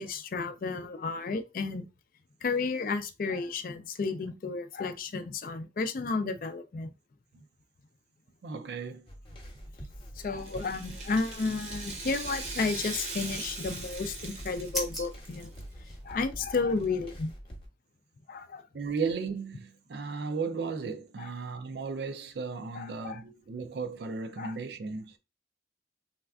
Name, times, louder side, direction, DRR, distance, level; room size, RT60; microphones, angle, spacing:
voice 1, 0.0-1.8 2.4-6.9 10.2-15.5 16.0-17.3 18.3-18.6 21.2-21.3 22.7-23.2 24.4-24.5, left 4 dB, 50° left, 0.4 m, -32 dB
voice 2, 8.4-9.1 18.7-25.1, right 5 dB, 70° right, 0.4 m, -35 dB
sound 1, 9.1-17.7, equal, 30° left, 0.8 m, -46 dB
Rattle (instrument), 10.3-15.6 15.9-16.0 16.8-16.9, right 3 dB, 40° right, 0.7 m, -40 dB
sound 2, 13.6-16.4, left 1 dB, ahead, 0.7 m, -41 dB
3.3 x 2.4 x 2.3 m
head